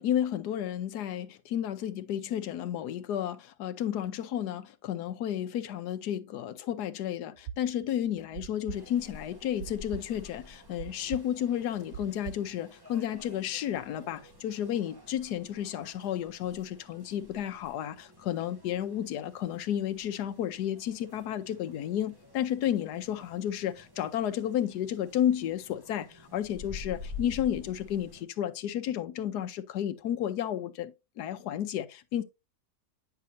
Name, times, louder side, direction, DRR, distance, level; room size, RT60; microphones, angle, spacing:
voice 1, 0.0-32.2, left 10 dB, 80° left, 1.3 m, -32 dB
sound 1, 7.4-12.6, right 10 dB, 70° right, 0.9 m, -41 dB
sound 2, 8.7-28.2, left 3 dB, 15° right, 1.4 m, -50 dB
9.4 x 5.7 x 2.6 m
omnidirectional pair, 1.7 m